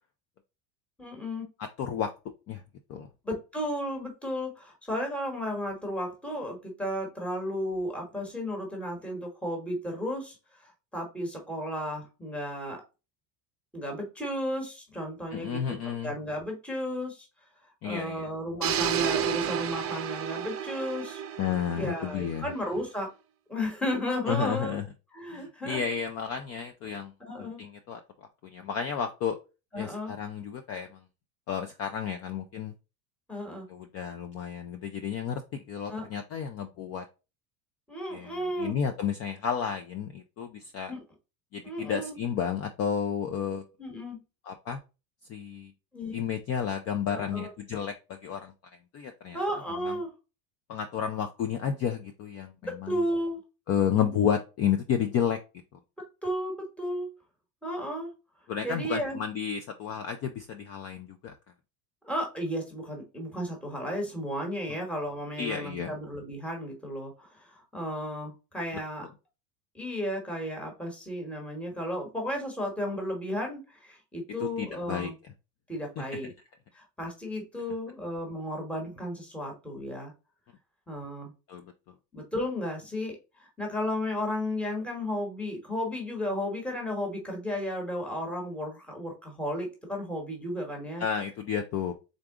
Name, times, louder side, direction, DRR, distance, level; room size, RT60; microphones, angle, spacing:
voice 1, 1.0-1.5 3.2-12.8 13.7-17.3 17.8-21.2 21.7-23.1 23.5-24.8 25.1-25.8 27.2-27.6 29.7-30.1 33.3-33.7 35.9-36.1 37.9-38.8 40.9-41.0 41.6-42.2 43.8-44.2 45.9-46.2 47.1-47.5 49.3-50.1 52.6-53.4 56.2-57.1 57.6-58.1 58.6-59.2 62.0-69.1 69.7-75.2 75.7-76.3 76.7-80.1 80.9-81.3 82.1-91.0, equal, ahead, 1 dB, 1.2 m, -34 dB
voice 2, 1.8-2.1 2.5-2.6 2.9-3.1 15.3-16.1 17.8-18.3 21.4-22.5 24.3-24.8 25.3-27.1 27.4-28.0 28.4-29.4 29.8-31.0 31.5-32.7 33.7-37.0 38.1-40.9 41.5-43.6 44.5-44.8 45.3-45.7 46.1-48.5 48.9-49.4 49.8-49.9 50.7-53.0 53.7-55.4 58.5-61.3 65.4-65.9 74.4-75.1 76.0-76.1 81.5-81.7 91.0-91.9, left 8 dB, 35° left, 7 dB, 0.4 m, -31 dB
sound 1, 18.6-22.6, right 9 dB, 30° right, 0.6 m, -31 dB
3.9 x 3.5 x 3.5 m, 0.29 s
supercardioid pair, 140°, 48 cm